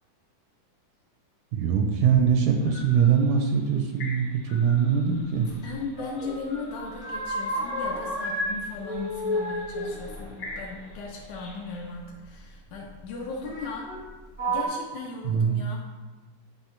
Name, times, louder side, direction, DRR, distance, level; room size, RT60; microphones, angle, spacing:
voice 1, 1.5-5.5 15.2-15.6, right 7 dB, 80° right, 3 dB, 1.9 m, -22 dB
sound 1, 2.5-11.9, left 2 dB, 55° left, 1.3 m, -47 dB
sound 2, 5.5-6.4 6.7-8.5 8.8-11.3 12.3-12.4 13.4-14.0 14.3-14.6, equal, 5° right, 0.5 m, -31 dB
voice 2, 5.6-13.9 14.5-15.8, left 4 dB, 70° left, -1 dB, 1.9 m, -37 dB
9.8 x 3.3 x 4.4 m, 1.2 s
omnidirectional pair, 3.9 m